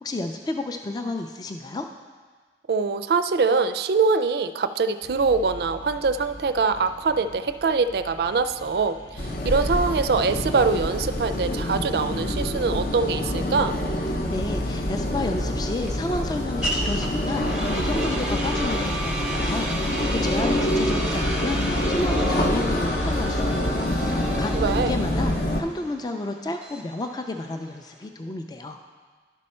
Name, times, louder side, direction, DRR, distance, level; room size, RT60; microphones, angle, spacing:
voice 1, 0.0-1.9 14.1-28.8, left 2 dB, 20° left, 5 dB, 0.3 m, -31 dB
voice 2, 2.7-13.8 24.5-25.0, right 4 dB, 65° right, 11 dB, 0.3 m, -23 dB
sound 1, 5.0-12.5, equal, 90° left, 0.9 m, -45 dB
sound 2, 9.2-25.6, left 1 dB, 55° left, 0.7 m, -26 dB
sound 3, 14.2-28.1, right 1 dB, 5° right, 0.7 m, -33 dB
11.5 x 5.4 x 4.3 m, 1.5 s
head